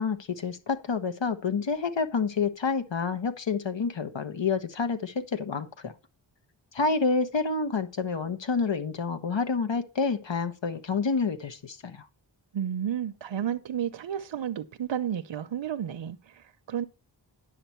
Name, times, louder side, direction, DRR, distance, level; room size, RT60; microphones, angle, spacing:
voice 1, 0.0-5.9 6.7-12.0, left 4 dB, 70° left, 1.3 m, -28 dB
voice 2, 12.5-16.8, right 9 dB, 75° right, 0.7 m, -32 dB
10.0 x 7.7 x 4.4 m
wide cardioid pair, 100°, 46 cm